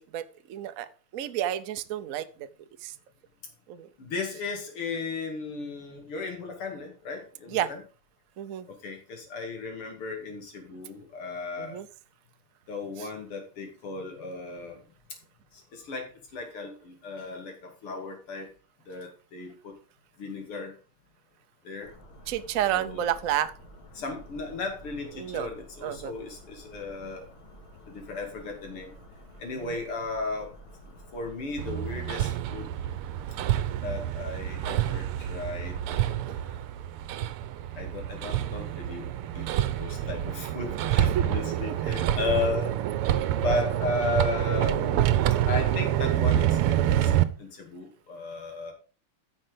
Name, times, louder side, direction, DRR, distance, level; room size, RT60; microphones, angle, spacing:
voice 1, 0.5-0.9 1.1-2.5 2.8-2.9 3.7-3.9 7.5-7.7 8.4-8.7 11.6-11.9 13.0-13.1 22.3-23.5 25.2-25.5 25.8-26.1 29.6-29.8 41.1-41.2, right 11 dB, 70° right, 11 dB, 0.8 m, -30 dB
voice 2, 4.0-7.8 8.7-11.8 12.7-14.8 15.5-18.5 18.9-19.8 20.2-20.7 21.6-21.9 22.7-23.1 23.9-27.2 27.9-29.0 29.4-30.5 31.1-32.7 33.8-35.8 36.0-36.6 37.8-39.1 39.3-39.5 39.8-42.8 43.4-45.1 45.5-48.7, left 3 dB, 85° left, 3 dB, 3.3 m, -35 dB
sound 1, 21.8-31.9, equal, 65° left, 2.8 m, -50 dB
Hammer, 31.6-47.2, right 12 dB, 85° right, 1.7 m, -27 dB
9.9 x 6.4 x 5.1 m, 0.37 s
omnidirectional pair, 2.4 m